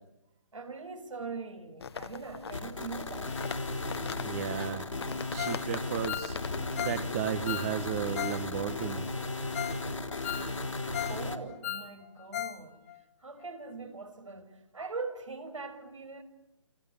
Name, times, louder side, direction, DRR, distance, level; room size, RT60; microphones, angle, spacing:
voice 1, 0.5-3.6 11.1-12.8 13.2-16.2, right 4 dB, 80° right, 6.2 m, -41 dB
sound 1, 1.8-7.3, left 6 dB, 55° left, 1.6 m, -43 dB
sound 2, 2.5-11.4, left 2 dB, 80° left, 4.5 m, -35 dB
voice 2, 4.2-4.9 5.3-6.4 6.8-9.1, right 10 dB, 25° right, 1.5 m, -34 dB
Ringtone, 5.4-5.7 5.9-8.4 8.7-8.8 9.2-9.3 9.5-9.8 10.1-11.2 11.5-12.6 12.9-13.0 13.4-13.5, left 11 dB, 35° left, 1.7 m, -37 dB
29.0 x 28.5 x 7.3 m
figure-of-eight pair, 150°, 16 cm